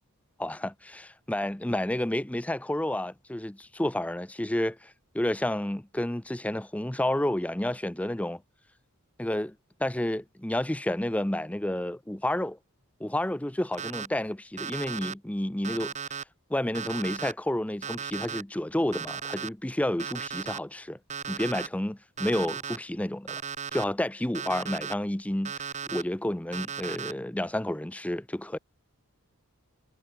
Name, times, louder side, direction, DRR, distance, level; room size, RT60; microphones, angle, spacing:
voice 1, 0.4-8.4 9.2-9.5 9.8-12.6 13.0-15.9 16.5-21.0 21.3-23.4 23.7-25.5 25.9-28.6, left 1 dB, 5° left, 0.5 m, -30 dB
Alarm, 13.7-14.1 14.6-15.1 15.6-16.2 16.7-17.3 17.8-18.4 18.9-19.5 20.0-20.6 21.1-21.7 22.2-22.8 23.3-23.8 24.3-24.9 25.4-26.0 26.5-27.1, right 6 dB, 30° right, 2.5 m, -36 dB
head